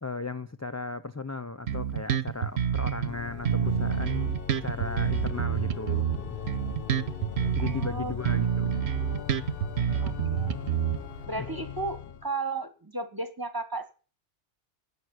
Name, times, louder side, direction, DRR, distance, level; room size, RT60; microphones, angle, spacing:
voice 1, 0.0-4.3 4.6-6.4 7.5-8.8 11.4-11.5, left 3 dB, 20° left, 0.4 m, -36 dB
Bass guitar, 1.7-3.1 3.4-7.9 8.2-11.3, right 9 dB, 65° right, 1.1 m, -28 dB
Organ, 3.0-12.3, left 8 dB, 55° left, 1.0 m, -38 dB
voice 2, 7.6-8.3 8.8-9.3 9.9-10.6 11.3-13.9, right 3 dB, 20° right, 1.6 m, -35 dB
11.0 x 9.0 x 9.6 m
omnidirectional pair, 1.2 m